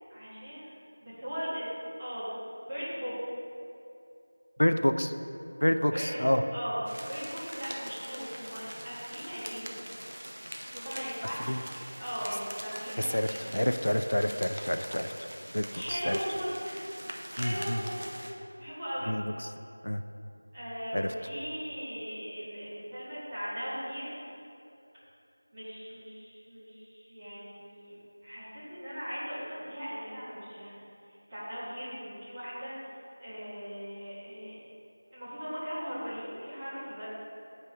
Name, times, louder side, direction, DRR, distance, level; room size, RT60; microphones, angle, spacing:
voice 1, 0.1-0.7 1.0-1.7 2.0-2.3 2.7-3.1 5.9-6.8 7.0-9.9 10.7-13.6 15.7-16.8 17.3-18.0 18.6-19.1 20.5-24.2 25.5-32.7 33.2-34.6 35.1-37.0, equal, 10° right, -14 dB, 1.4 m, -38 dB
voice 2, 4.6-5.1 5.6-6.4 11.5-11.6 13.1-15.3 15.5-16.2 17.4-17.8 19.1-19.2 19.8-20.0 20.9-21.1, equal, 80° left, 8 dB, 0.3 m, -28 dB
sound 1, 6.9-18.3, right 1 dB, 55° right, 0.7 m, -43 dB
8.2 x 5.4 x 3.4 m, 2.8 s
figure-of-eight pair, 175°, 0 cm